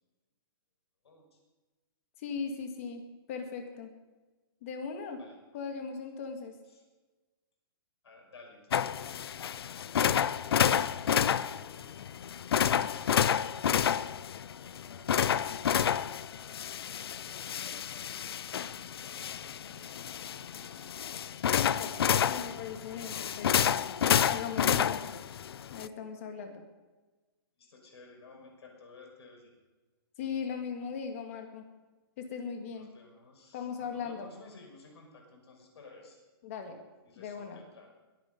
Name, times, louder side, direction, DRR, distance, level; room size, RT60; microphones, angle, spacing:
voice 1, 1.0-1.4 5.2-5.4 6.6-6.8 8.0-12.0 17.3-19.2 19.5-21.0 27.6-29.6 32.7-36.3 37.0-37.9, left 3 dB, 85° left, 1 dB, 6.0 m, -56 dB
voice 2, 2.2-3.0 3.3-3.9 4.6-5.2 5.5-6.5 21.5-22.0 22.3-23.7 24.3-25.2 25.7-26.6 30.2-31.6 32.2-32.9 33.5-34.3 36.4-36.8 37.2-37.6, left 6 dB, 35° left, 5 dB, 2.0 m, -38 dB
sound 1, 8.7-25.9, left 9 dB, 70° left, 0.6 m, -30 dB
22.0 x 9.5 x 5.3 m, 1.2 s
hypercardioid pair, 180°, 13 cm